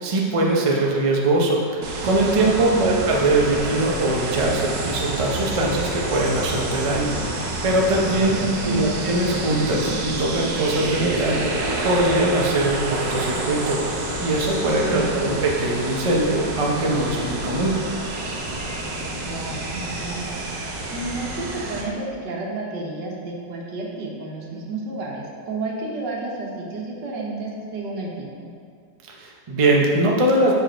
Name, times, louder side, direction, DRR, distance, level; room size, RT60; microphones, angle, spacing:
voice 1, 0.0-7.1 7.6-11.4 11.8-17.7 29.1-30.5, right 2 dB, 40° right, -2 dB, 0.5 m, -21 dB
sound 1, 1.8-21.8, right 2 dB, 65° right, 1.4 m, -28 dB
voice 2, 2.7-3.0 8.4-9.0 14.8-15.2 19.2-28.5, right 2 dB, 80° right, -2 dB, 1.7 m, -31 dB
sound 2, 14.1-19.3, left 5 dB, 85° left, 1.2 m, -39 dB
6.6 x 4.9 x 4.5 m, 2.1 s
omnidirectional pair, 1.9 m